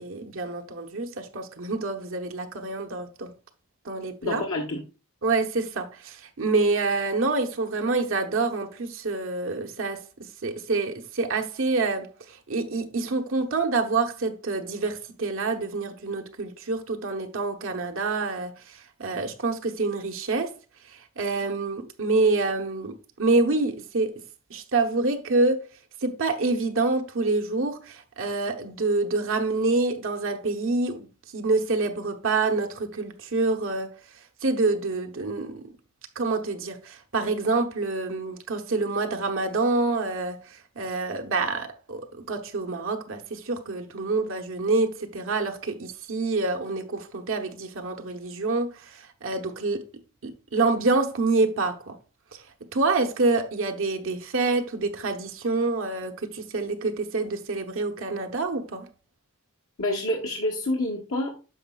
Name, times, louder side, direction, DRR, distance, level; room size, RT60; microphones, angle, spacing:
voice 1, 0.0-3.3 3.8-4.4 5.2-10.0 10.4-20.5 20.9-24.2 24.5-25.6 26.0-31.1 31.3-33.9 34.4-35.7 36.1-49.8 50.2-52.0 52.3-52.4 52.7-58.9, right 3 dB, 65° right, 1.0 m, -27 dB
voice 2, 4.2-4.8 59.8-61.3, left 1 dB, 80° left, 1.3 m, -28 dB
9.6 x 6.1 x 2.4 m
head